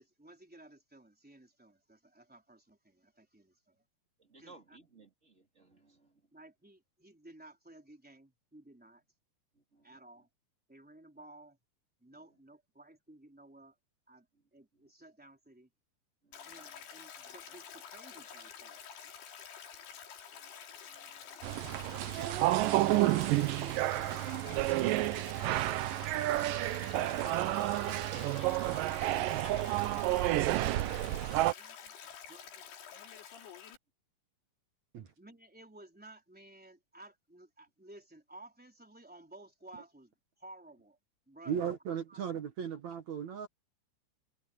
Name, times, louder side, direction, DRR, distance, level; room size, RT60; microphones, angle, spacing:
voice 1, 0.0-3.8 4.4-4.8 6.3-9.0 9.8-10.3 10.7-11.6 12.0-13.7 14.1-14.3 14.5-15.7 16.4-18.8 22.2-24.3 31.6-31.9 32.3-32.6 35.2-41.0 41.3-41.6 42.1-42.2, right 2 dB, ahead, 3.1 m, -55 dB
voice 2, 4.2-6.3 9.5-10.0 12.1-12.3 14.3-14.4 16.2-16.9 20.4-20.5 20.9-22.1 27.0-31.2, right 3 dB, 20° right, 2.8 m, -56 dB
Stream, 16.3-33.8, left 8 dB, 85° left, 5.0 m, -49 dB
sound 1, 21.4-31.5, right 16 dB, 75° right, 2.1 m, -30 dB
voice 3, 41.5-43.5, right 8 dB, 60° right, 2.2 m, -36 dB
omnidirectional pair, 4.6 m